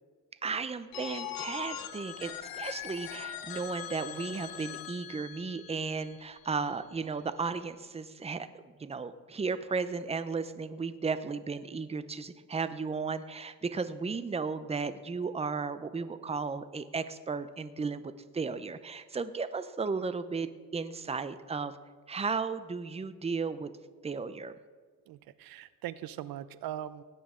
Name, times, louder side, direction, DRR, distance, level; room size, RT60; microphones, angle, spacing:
voice 1, 0.4-21.8 22.1-23.7 24.0-24.5, right 4 dB, 20° right, 13 dB, 0.6 m, -35 dB
Telephone, 0.9-6.7, left 11 dB, 80° left, 0.8 m, -42 dB
voice 2, 25.1-27.0, right 12 dB, 85° right, 16 dB, 0.6 m, -40 dB
17.5 x 9.4 x 3.7 m, 1.5 s
cardioid pair, 95°, 35 cm